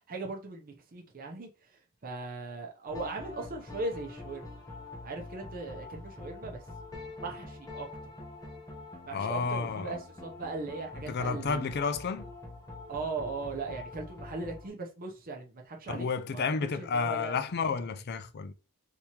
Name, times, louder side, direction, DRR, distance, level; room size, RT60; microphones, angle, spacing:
voice 1, 0.1-1.5 2.0-4.4 5.0-6.6 7.2-8.1 9.0-11.7 12.9-16.1 16.3-16.4 16.8-17.4, right 3 dB, 40° right, 0.7 m, -38 dB
sound 1, 2.9-14.7, left 2 dB, 15° left, 0.7 m, -45 dB
voice 2, 9.1-10.0 11.0-12.3 15.9-18.5, left 5 dB, 50° left, 0.4 m, -31 dB
3.5 x 3.0 x 2.8 m
head